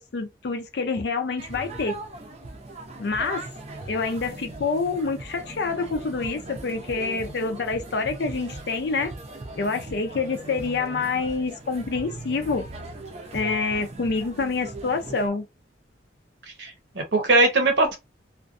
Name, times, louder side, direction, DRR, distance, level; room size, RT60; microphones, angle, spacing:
voice 1, 0.0-2.0 3.0-3.5 3.9-9.1 9.6-12.7 13.3-15.5, left 4 dB, 65° left, 0.4 m, -27 dB
sound 1, 1.4-15.3, right 2 dB, 35° right, 0.5 m, -39 dB
voice 2, 16.6-18.0, right 2 dB, 75° right, 0.8 m, -21 dB
2.5 x 2.2 x 2.4 m
head